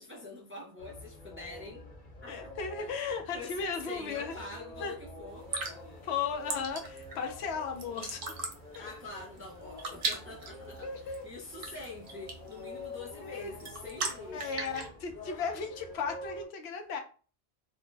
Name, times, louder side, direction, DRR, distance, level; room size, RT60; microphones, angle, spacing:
voice 1, 0.0-1.9 2.2-2.5 2.8-2.9 3.3-5.5 8.8-14.5, left 3 dB, 20° right, 0.3 m, -45 dB
sound 1, 0.8-16.5, left 1 dB, 50° left, 1.0 m, -48 dB
voice 2, 2.3-4.3 4.8-4.9 6.0-8.3 8.7-8.9 10.5-11.3 13.2-13.5 14.3-17.0, left 5 dB, 85° left, 0.8 m, -36 dB
sound 2, 5.3-14.9, right 4 dB, 65° right, 0.8 m, -40 dB
2.5 x 2.1 x 3.2 m
omnidirectional pair, 1.1 m